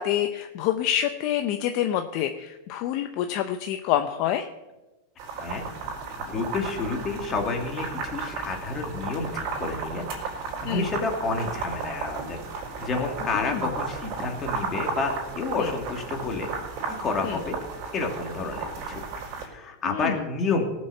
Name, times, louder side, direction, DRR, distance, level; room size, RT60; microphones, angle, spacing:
voice 1, 0.0-4.5 10.6-10.8 13.5-13.6 15.6-15.7 17.3-17.4 19.9-20.1, left 11 dB, 45° left, 7 dB, 0.8 m, -27 dB
sound 1, 5.2-19.4, right 4 dB, 45° right, 4.3 m, -34 dB
voice 2, 6.2-10.4 10.6-16.5 16.9-17.6 17.9-19.0 19.4-20.6, left 3 dB, 25° left, 2 dB, 2.4 m, -30 dB
18.0 x 6.3 x 7.0 m, 1.1 s
supercardioid pair, 150°, 0 cm